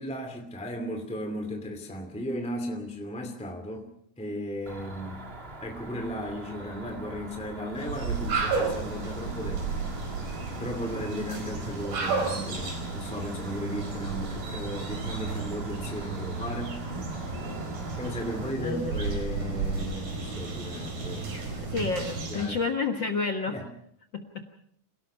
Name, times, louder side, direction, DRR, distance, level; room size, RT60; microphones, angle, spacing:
voice 1, 0.0-3.9 4.2-5.2 5.6-9.7 10.6-17.3 18.0-21.8 22.3-22.6 23.5-23.6, equal, ahead, 4 dB, 1.6 m, -36 dB
Cricket, 4.7-18.5, right 2 dB, 25° right, 1.3 m, -43 dB
sound 1, 7.7-22.6, right 4 dB, 75° right, 6.3 m, -33 dB
voice 2, 18.6-19.0 21.6-23.6 24.1-24.2, left 4 dB, 60° left, 4 dB, 1.2 m, -29 dB
28.5 x 18.0 x 5.6 m, 0.65 s
omnidirectional pair, 4.2 m